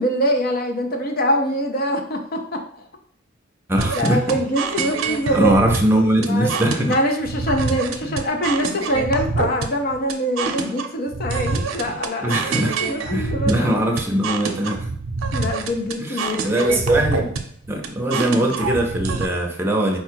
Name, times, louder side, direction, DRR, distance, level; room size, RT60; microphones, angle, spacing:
voice 1, 0.0-2.6 3.9-5.6 6.3-6.5 6.9-12.4 12.8-13.8 15.3-16.8, equal, 50° left, 4 dB, 0.6 m, -24 dB
voice 2, 3.7-4.2 5.0-7.0 8.0-8.2 12.2-12.8 13.1-14.9 16.0-17.3 17.7-20.0, right 1 dB, 10° right, 1 dB, 0.7 m, -21 dB
sound 1, 3.8-19.3, right 4 dB, 85° right, 0.6 m, -26 dB
4.4 x 2.3 x 4.5 m, 0.62 s
head